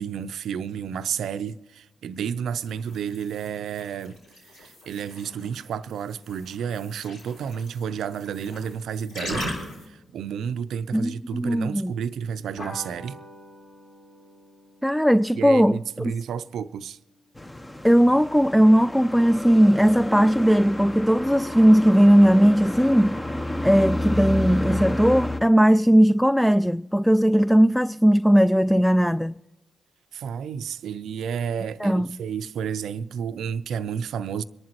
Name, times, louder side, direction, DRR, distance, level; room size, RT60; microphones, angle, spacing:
voice 1, 0.0-4.2 4.4-9.5 9.8-13.2 15.3-17.0 30.1-34.4, right 7 dB, 70° right, 0.5 m, -31 dB
sound 1, 2.6-9.9, left 1 dB, 75° left, 4.1 m, -39 dB
voice 2, 10.9-11.9 14.8-16.1 17.8-23.2 23.6-29.3 31.8-32.1, equal, ahead, 0.3 m, -18 dB
sound 2, 12.6-17.5, equal, 60° left, 4.0 m, -46 dB
sound 3, 17.4-25.4, left 1 dB, 20° left, 0.9 m, -30 dB
25.0 x 11.0 x 3.0 m
hypercardioid pair, 40°, 0 cm